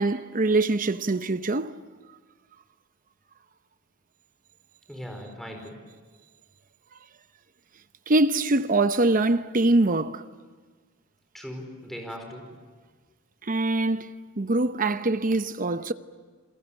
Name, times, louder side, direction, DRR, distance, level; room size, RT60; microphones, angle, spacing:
voice 1, 0.0-1.7 8.1-10.2 13.5-14.1 14.4-15.9, right 2 dB, 40° right, 0.8 m, -23 dB
voice 2, 4.9-5.8 11.3-12.5, equal, ahead, 4.9 m, -39 dB
28.5 x 22.0 x 9.1 m
head